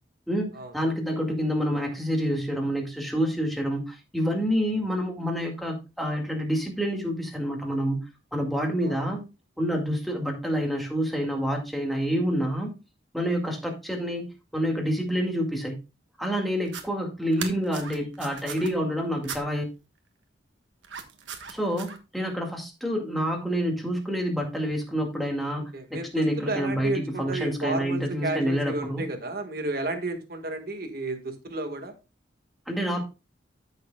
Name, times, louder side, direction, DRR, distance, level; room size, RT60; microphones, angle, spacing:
voice 1, 0.3-8.0 8.3-9.2 9.6-12.7 13.1-15.8 16.2-19.6 21.5-29.0 32.7-33.0, equal, ahead, 1 dB, 2.1 m, -28 dB
sound 1, 16.6-16.8 17.3-18.7 19.2-19.4 20.8-22.0, right 7 dB, 80° right, 1.4 m, -38 dB
voice 2, 25.7-31.9, right 2 dB, 50° right, 6 dB, 1.6 m, -32 dB
13.5 x 6.6 x 2.3 m, 0.28 s
head